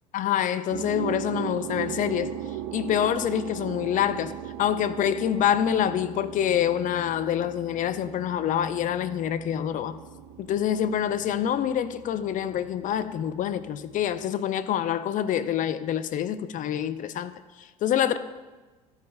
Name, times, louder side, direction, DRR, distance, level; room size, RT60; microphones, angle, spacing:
voice 1, 0.1-2.4 2.7-4.3 4.6-10.0 10.4-18.2, left 10 dB, 40° left, 0.5 m, -26 dB
sound 1, 0.7-14.2, right 12 dB, 60° right, 0.5 m, -39 dB
12.5 x 4.8 x 3.5 m
hypercardioid pair, 70°, 20 cm